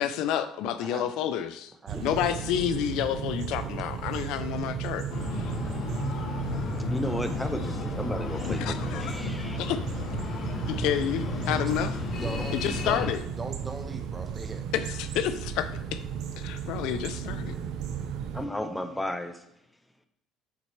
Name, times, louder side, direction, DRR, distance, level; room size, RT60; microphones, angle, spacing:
voice 1, 0.0-1.7 2.0-5.0 5.3-5.5 8.4-9.1 9.6-9.8 10.7-12.0 12.5-13.2 14.7-16.0 16.4-17.5, left 10 dB, 75° left, 11 dB, 0.4 m, -29 dB
voice 2, 0.8-1.1 1.8-2.4 12.2-13.1 13.4-14.7, right 3 dB, 25° right, 6 dB, 0.9 m, -38 dB
sound 1, 1.9-18.5, right 8 dB, 70° right, 0.6 m, -35 dB
Breathing, 5.1-13.1, left 4 dB, 55° left, 0.8 m, -34 dB
voice 3, 6.9-9.6 18.3-19.4, left 1 dB, 5° left, 7 dB, 0.8 m, -33 dB
7.3 x 4.1 x 3.1 m, 0.79 s
supercardioid pair, 85°, 0 cm